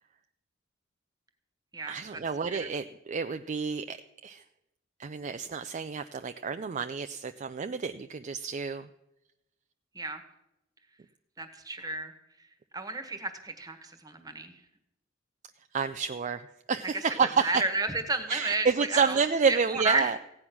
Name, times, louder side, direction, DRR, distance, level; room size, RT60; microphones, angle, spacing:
voice 1, 1.9-4.4 5.0-8.9 15.7-17.6 18.3-20.2, right 5 dB, 40° right, 9 dB, 0.4 m, -29 dB
voice 2, 11.4-12.1 12.7-14.6 16.9-19.2 19.5-20.2, right 2 dB, 20° right, 8 dB, 1.4 m, -32 dB
16.0 x 9.8 x 6.0 m, 0.87 s
head